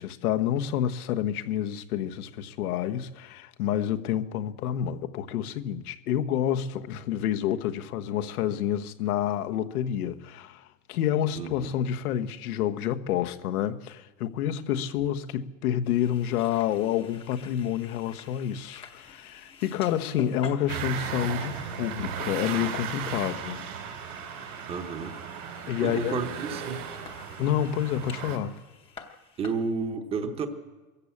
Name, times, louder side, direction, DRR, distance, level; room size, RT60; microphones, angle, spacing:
voice 1, 0.0-23.6 25.7-26.2 27.4-28.6, left 10 dB, 85° left, 1.4 m, -29 dB
voice 2, 11.3-11.7 24.7-25.2 25.8-26.8 29.4-30.5, right 5 dB, 15° right, 1.0 m, -31 dB
sound 1, 15.8-29.5, left 5 dB, 10° left, 0.9 m, -48 dB
sound 2, 20.7-28.4, right 8 dB, 85° right, 4.2 m, -36 dB
23.0 x 14.0 x 8.5 m
supercardioid pair, 180°, 43 cm